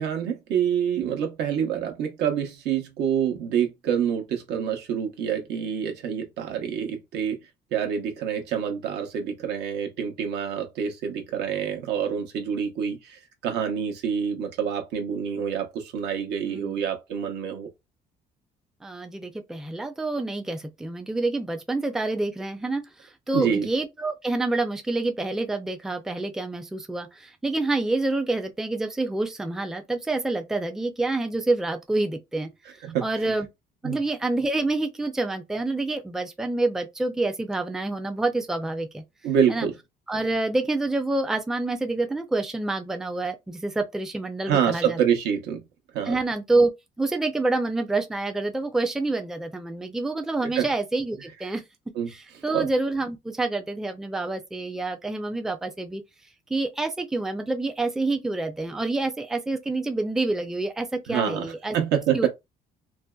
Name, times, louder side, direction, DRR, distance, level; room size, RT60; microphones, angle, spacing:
voice 1, 0.0-7.4 7.7-17.7 23.3-23.7 32.8-33.3 33.8-34.0 39.2-39.7 44.5-45.6 45.9-46.2 50.4-50.7 52.0-52.1 52.5-52.7 61.1-62.3, right 8 dB, 80° right, 0.8 m, -27 dB
voice 2, 16.4-16.8 18.8-32.5 33.0-33.5 33.8-39.0 39.5-39.7 40.1-45.0 46.0-46.7 47.0-51.6 52.1-56.0 56.5-61.8 62.1-62.3, right 2 dB, 5° right, 0.4 m, -27 dB
2.5 x 2.2 x 2.3 m
cardioid pair, 110°, 17 cm